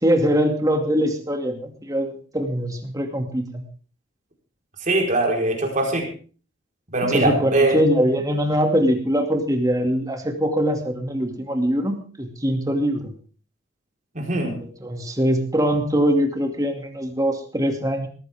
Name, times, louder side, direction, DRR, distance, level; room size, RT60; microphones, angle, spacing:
voice 1, 0.0-3.6 7.1-13.1 14.6-18.1, equal, 20° right, 4 dB, 2.5 m, -22 dB
voice 2, 4.8-6.1 6.9-7.8 14.1-14.6, right 2 dB, 40° right, 1 dB, 4.6 m, -21 dB
19.5 x 14.5 x 3.6 m, 0.40 s
head